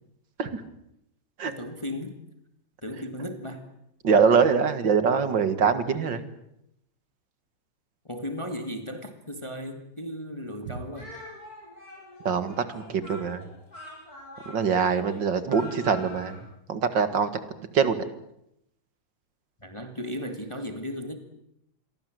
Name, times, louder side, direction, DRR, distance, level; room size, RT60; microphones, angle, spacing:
voice 1, 1.5-2.2 2.8-3.7 8.1-11.2 19.6-21.2, equal, 15° left, 7 dB, 2.1 m, -35 dB
voice 2, 4.0-6.3 12.3-13.4 14.5-16.4 16.7-17.3 17.7-18.0, right 6 dB, 65° right, 11 dB, 2.6 m, -23 dB
Speech, 10.9-16.4, left 2 dB, 45° left, 7.4 m, -44 dB
27.5 x 23.0 x 7.9 m, 0.80 s
omnidirectional pair, 2.2 m